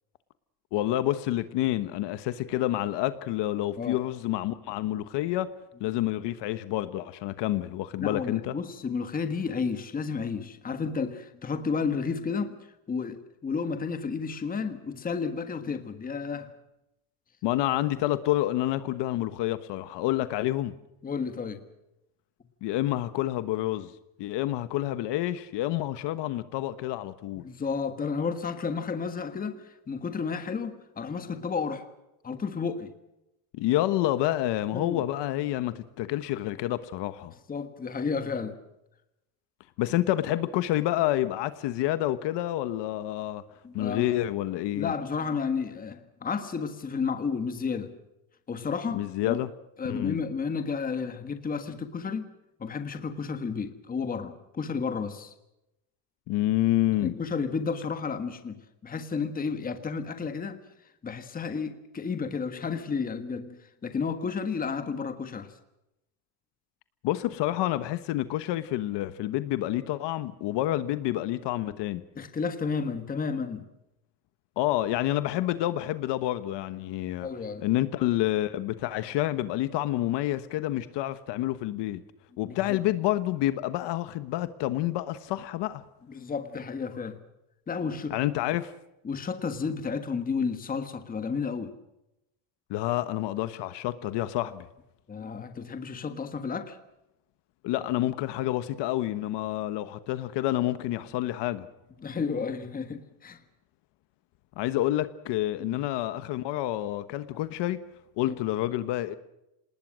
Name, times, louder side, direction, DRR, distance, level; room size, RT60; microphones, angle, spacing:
voice 1, 0.7-5.5 5.8-8.5 17.4-20.7 22.6-23.9 24.2-27.5 33.5-37.3 39.8-43.4 43.7-44.9 48.9-49.5 49.9-50.2 56.3-57.1 67.0-72.0 74.6-77.3 77.6-82.0 82.4-85.8 88.1-88.7 92.7-94.7 97.6-101.7 104.6-107.8 108.2-109.2, left 14 dB, 55° left, 1.3 m, -28 dB
voice 2, 8.0-12.5 12.9-16.5 21.0-21.6 27.3-31.9 32.2-32.9 34.7-35.0 37.5-38.6 43.6-44.2 44.7-48.0 48.5-49.4 49.8-52.3 52.6-55.3 57.0-60.6 61.0-65.5 72.1-73.7 77.2-77.7 82.4-82.8 86.1-87.2 87.7-88.2 89.0-91.8 95.1-96.8 102.0-103.4 105.6-105.8 108.2-108.4, left 5 dB, 15° left, 1.5 m, -32 dB
27.5 x 20.0 x 6.3 m
cardioid pair, 165°, 49 cm